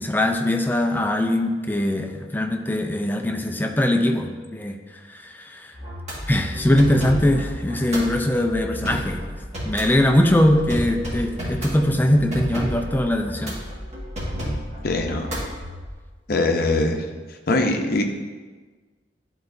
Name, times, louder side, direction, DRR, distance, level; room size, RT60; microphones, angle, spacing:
voice 1, 0.0-4.8 5.1-5.7 6.3-9.2 9.6-13.6, left 1 dB, 10° left, 4 dB, 0.5 m, -21 dB
sound 1, 5.7-15.9, equal, 40° right, 1.8 m, -32 dB
voice 2, 14.8-15.3 16.3-17.0 17.5-18.0, left 2 dB, 55° left, 4 dB, 0.7 m, -22 dB
11.0 x 4.0 x 2.6 m, 1.4 s
head